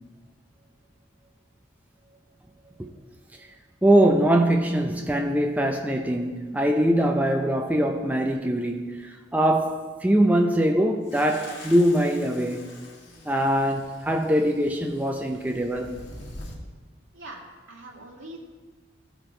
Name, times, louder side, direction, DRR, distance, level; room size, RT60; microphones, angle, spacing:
voice 1, 3.8-12.7 13.3-16.0, right 1 dB, 10° right, 0.5 m, -22 dB
sound 1, 11.1-16.6, left 1 dB, 60° left, 1.6 m, -45 dB
voice 2, 17.7-18.4, right 2 dB, 90° right, 2.1 m, -42 dB
15.0 x 5.0 x 4.4 m
head